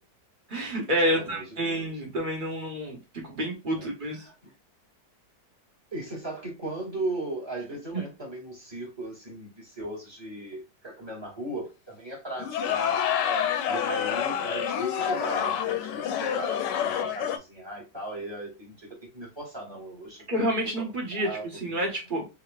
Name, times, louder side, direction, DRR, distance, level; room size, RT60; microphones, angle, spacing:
voice 1, 0.5-3.0 3.2-4.2 20.3-21.3 21.6-22.2, equal, 30° right, 1.4 m, -28 dB
voice 2, 1.1-2.0 3.7-3.9 4.2-4.3 5.9-13.0 13.7-18.8 19.0-20.8 21.1-21.8, right 2 dB, 15° right, 2.2 m, -37 dB
sound 1, 12.4-17.4, left 8 dB, 85° left, 1.2 m, -28 dB
4.7 x 3.0 x 2.3 m
omnidirectional pair, 1.9 m